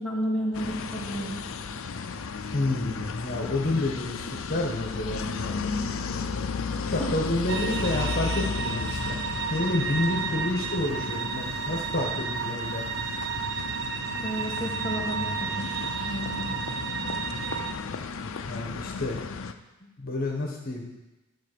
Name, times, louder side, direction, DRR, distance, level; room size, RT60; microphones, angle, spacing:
voice 1, 0.0-1.4 6.8-7.1 14.2-16.6, equal, 5° left, -5 dB, 1.6 m, -32 dB
sound 1, 0.5-19.5, left 5 dB, 90° left, 0.6 m, -34 dB
voice 2, 2.5-5.7 6.9-9.2 9.5-12.8 18.5-19.2 20.0-20.8, left 2 dB, 45° left, 0 dB, 1.3 m, -29 dB
sound 2, 7.5-17.7, right 6 dB, 60° right, 0.7 m, -32 dB
11.5 x 4.2 x 6.7 m, 1.1 s
head